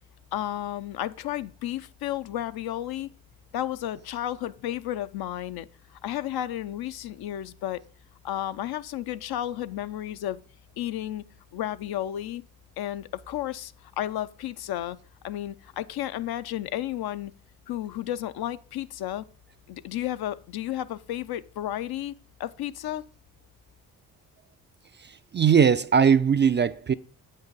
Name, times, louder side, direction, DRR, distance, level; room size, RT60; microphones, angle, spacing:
voice 1, 0.3-3.1 3.5-7.8 8.2-10.4 10.8-11.2 11.5-12.4 12.8-15.0 15.2-17.3 17.7-19.3 19.7-22.1 22.4-23.0, left 12 dB, 65° left, 0.6 m, -32 dB
voice 2, 25.3-26.9, right 7 dB, 30° right, 0.4 m, -19 dB
8.0 x 5.5 x 3.9 m
hypercardioid pair, 50°, 41 cm